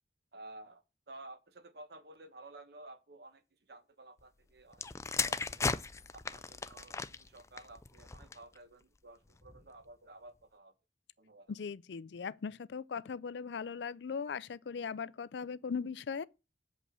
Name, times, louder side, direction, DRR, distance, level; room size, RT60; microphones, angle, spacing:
voice 1, 0.3-4.9 5.2-5.7 6.1-10.7 11.2-11.6, right 2 dB, 65° right, 1.1 m, -53 dB
sound 1, 4.7-8.6 9.3-9.6, left 4 dB, 15° left, 0.4 m, -37 dB
voice 2, 11.5-16.2, left 6 dB, 75° left, 0.4 m, -39 dB
7.6 x 5.4 x 7.5 m
head